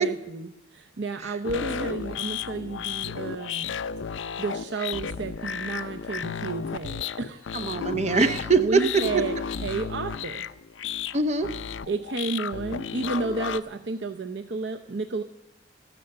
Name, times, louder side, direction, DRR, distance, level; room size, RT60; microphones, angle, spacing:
voice 1, 0.0-3.7 4.4-7.5 8.6-9.4 9.6-10.5 11.9-15.2, right 3 dB, 65° right, 6 dB, 0.7 m, -31 dB
voice 2, 1.2-1.9 7.5-8.8 11.1-11.5, right 4 dB, 35° right, 9 dB, 0.8 m, -24 dB
sound 1, 1.4-13.6, left 7 dB, 80° left, 0.5 m, -33 dB
14.0 x 12.0 x 6.9 m, 0.88 s
head